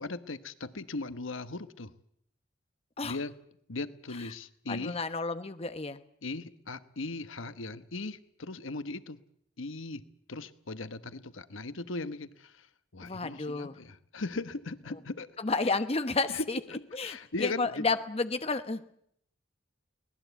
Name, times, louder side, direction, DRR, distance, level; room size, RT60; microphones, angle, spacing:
voice 1, 0.0-1.9 3.0-3.4 3.7-5.0 6.2-9.2 9.6-10.0 10.3-12.7 12.9-15.3 16.3-16.4 16.7-17.9, left 3 dB, 90° left, 12 dB, 1.2 m, -38 dB
voice 2, 4.7-6.0 13.0-13.8 15.4-16.6 16.9-19.0, left 3 dB, 30° left, 10 dB, 1.0 m, -31 dB
23.5 x 18.5 x 8.2 m, 0.70 s
head